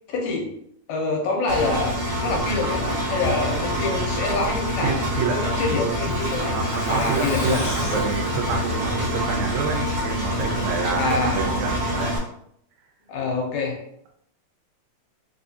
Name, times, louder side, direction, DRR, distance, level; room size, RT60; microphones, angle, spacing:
voice 1, 0.1-0.6 0.9-5.0 5.3-7.6 11.0-11.6 13.1-13.8, left 3 dB, 80° left, 0 dB, 2.1 m, -26 dB
Engine, 1.5-12.2, equal, 60° right, 1.9 m, -26 dB
voice 2, 4.8-5.5 6.3-12.2, right 5 dB, 80° right, 1 dB, 1.9 m, -28 dB
Truck, 5.0-9.7 10.0-10.1 10.4-10.5, equal, 60° left, 1.8 m, -35 dB
4.7 x 2.6 x 2.4 m, 0.72 s
omnidirectional pair, 3.4 m